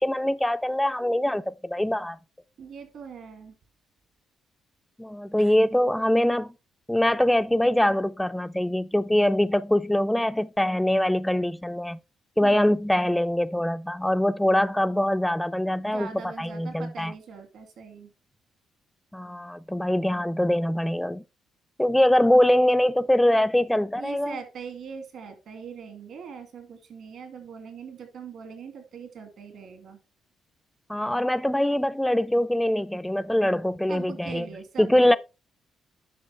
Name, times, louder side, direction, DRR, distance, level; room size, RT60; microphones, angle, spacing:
voice 1, 0.0-2.2 5.0-6.5 6.9-12.0 12.4-16.1 16.4-17.1 19.1-21.2 21.8-24.4 30.9-34.5 34.8-35.2, left 1 dB, 5° left, 0.3 m, -23 dB
voice 2, 2.6-3.5 5.4-5.6 12.4-12.8 15.7-18.1 22.0-22.1 24.0-30.0 33.9-35.2, right 6 dB, 70° right, 2.3 m, -41 dB
10.0 x 6.0 x 3.3 m
cardioid pair, 90°, 0 cm